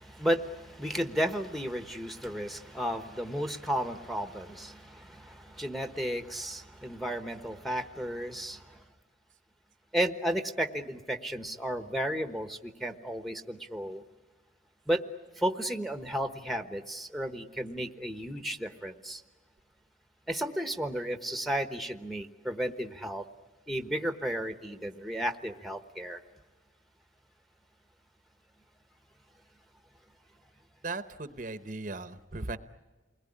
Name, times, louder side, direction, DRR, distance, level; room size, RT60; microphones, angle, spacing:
voice 1, 0.0-8.8 9.9-14.0 14.9-15.0 15.4-19.2 20.3-23.2 23.7-26.2, equal, ahead, 8 dB, 1.1 m, -33 dB
voice 2, 30.8-32.6, right 3 dB, 40° right, 11 dB, 0.9 m, -37 dB
29.0 x 20.5 x 10.0 m, 1.3 s
head